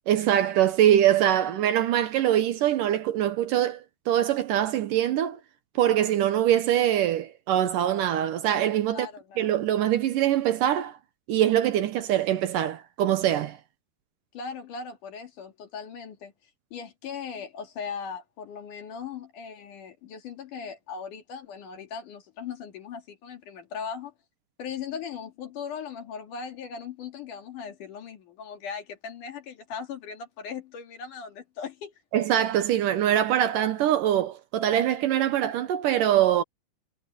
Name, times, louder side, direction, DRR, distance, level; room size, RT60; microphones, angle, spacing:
voice 1, 0.1-5.4 5.8-9.1 9.4-11.0 11.3-13.6 32.1-36.4, right 11 dB, 70° right, 2.4 m, -23 dB
voice 2, 8.9-9.5 14.3-16.3 16.7-24.1 24.6-31.9, left 6 dB, 60° left, 3.6 m, -38 dB
omnidirectional pair, 4.3 m